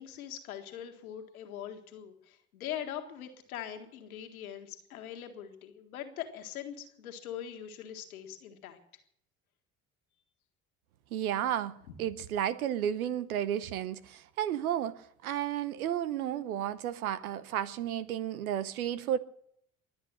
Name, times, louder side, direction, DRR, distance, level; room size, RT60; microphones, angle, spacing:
voice 1, 0.0-8.8, left 10 dB, 85° left, 1.8 m, -42 dB
voice 2, 11.1-19.2, right 10 dB, 85° right, 0.9 m, -32 dB
22.5 x 8.3 x 7.7 m
hypercardioid pair, 60°, 42 cm